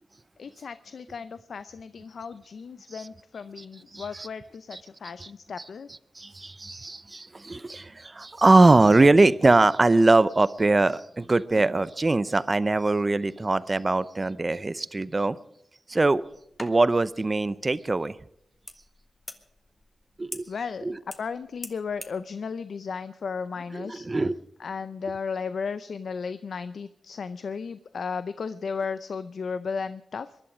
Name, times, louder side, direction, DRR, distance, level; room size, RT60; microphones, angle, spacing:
voice 1, 0.4-5.9 20.5-20.9 21.2-24.1 24.6-30.4, left 5 dB, 70° left, 13 dB, 0.6 m, -35 dB
voice 2, 6.2-15.4 15.9-16.2 16.6-18.2 20.2-20.5 20.8-21.0 23.8-24.4, right 2 dB, 30° right, 16 dB, 0.6 m, -21 dB
sound 1, 16.3-22.2, left 1 dB, 20° left, 1.5 m, -46 dB
22.0 x 11.5 x 5.0 m, 0.76 s
cardioid pair, 75°, 0 cm